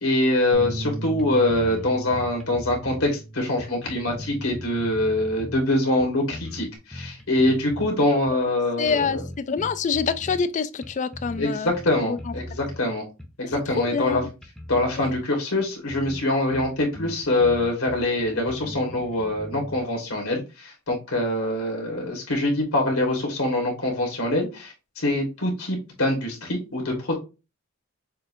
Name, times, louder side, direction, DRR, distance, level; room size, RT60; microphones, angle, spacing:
voice 1, 0.0-9.2 11.4-13.1 13.4-14.2 14.7-27.1, left 1 dB, 80° left, 1.8 m, -24 dB
Bass guitar, 0.5-5.0 5.4-6.8, right 2 dB, 60° right, 0.8 m, -39 dB
sound 1, 0.6-1.2 1.5-3.1 3.6-5.7 6.0-7.9 8.3-8.4 8.8-10.5 10.8-11.5 11.7-12.8 13.2-15.3 15.6-15.7 15.9-16.2 16.5-19.8, left 1 dB, ahead, 0.7 m, -39 dB
voice 2, 8.8-9.2 9.5-11.7 12.1-12.3 13.8-14.3 15.0-15.2, left 5 dB, 35° left, 0.3 m, -26 dB
6.6 x 2.7 x 2.6 m
head